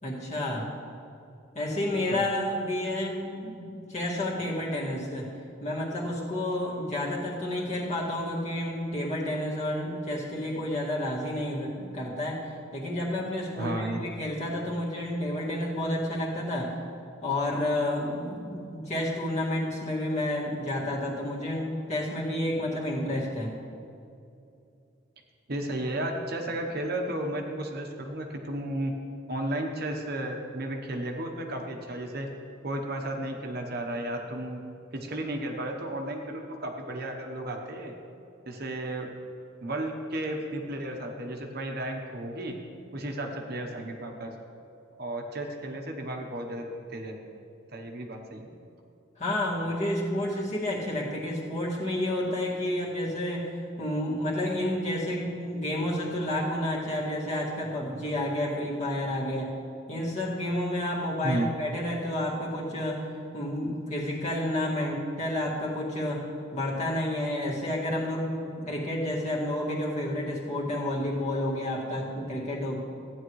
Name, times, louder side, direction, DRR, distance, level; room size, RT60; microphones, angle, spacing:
voice 1, 0.0-0.7 1.5-5.3 5.6-12.4 12.7-16.8 17.2-23.5 49.2-59.5 59.9-63.1 63.3-66.3 66.5-72.8, left 1 dB, 35° left, -5 dB, 2.0 m, -30 dB
voice 2, 13.6-14.0 25.5-28.9 29.3-32.3 32.6-34.6 34.9-37.9 38.5-39.1 39.6-42.6 42.9-44.3 45.0-46.6 46.9-47.2 47.7-48.5 61.2-61.5, right 1 dB, 50° right, 2 dB, 1.0 m, -33 dB
15.5 x 9.7 x 3.2 m, 2.6 s
head